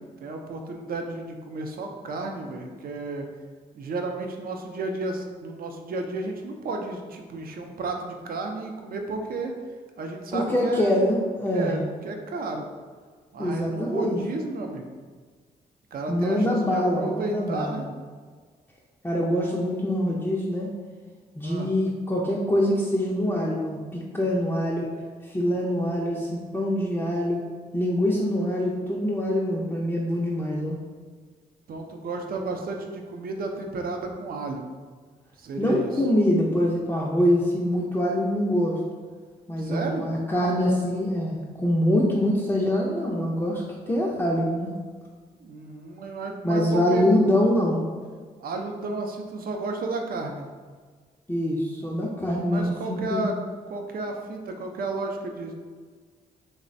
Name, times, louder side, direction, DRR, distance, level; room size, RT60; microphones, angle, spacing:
voice 1, 0.2-3.3 3.7-9.5 10.0-11.0 11.5-12.7 13.3-14.9 15.9-17.8 21.4-21.7 31.7-34.7 35.4-36.0 39.6-40.1 45.4-47.1 48.4-50.5 52.5-53.3 53.7-55.6, right 3 dB, 55° right, 3 dB, 0.5 m, -32 dB
voice 2, 10.3-11.8 13.4-14.2 16.1-17.9 19.0-20.7 21.4-24.9 25.2-27.4 27.7-30.8 35.6-38.8 39.5-44.7 46.4-47.8 51.3-53.3, left 1 dB, 10° left, -5 dB, 0.5 m, -24 dB
3.2 x 2.0 x 2.5 m, 1.5 s
supercardioid pair, 45°, 18 cm